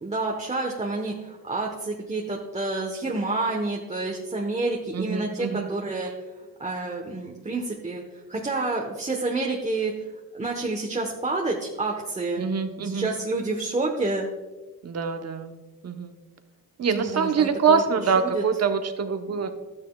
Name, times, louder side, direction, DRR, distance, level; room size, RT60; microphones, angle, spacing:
voice 1, 0.0-6.1 6.6-10.1 10.3-12.4 12.8-14.3 16.9-17.8 18.2-18.4 19.3-19.5, right 3 dB, 20° right, 0 dB, 1.2 m, -29 dB
voice 2, 4.9-5.7 12.4-13.1 14.8-15.5 15.8-16.1 16.8-19.5, right 6 dB, 45° right, 7 dB, 1.0 m, -24 dB
12.5 x 9.7 x 2.4 m, 1.3 s
cardioid pair, 90°, 35 cm